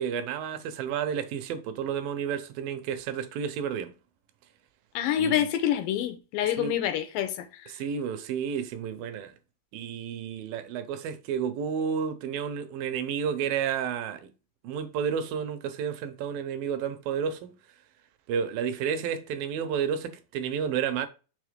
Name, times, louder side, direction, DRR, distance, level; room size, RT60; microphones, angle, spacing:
voice 1, 0.0-3.9 5.2-5.5 6.4-6.7 7.7-9.3 9.7-14.3 14.6-17.6 18.3-21.1, right 7 dB, 80° right, 2.5 m, -31 dB
voice 2, 5.0-7.5, left 11 dB, 80° left, 2.4 m, -27 dB
5.9 x 3.4 x 5.1 m
omnidirectional pair, 4.1 m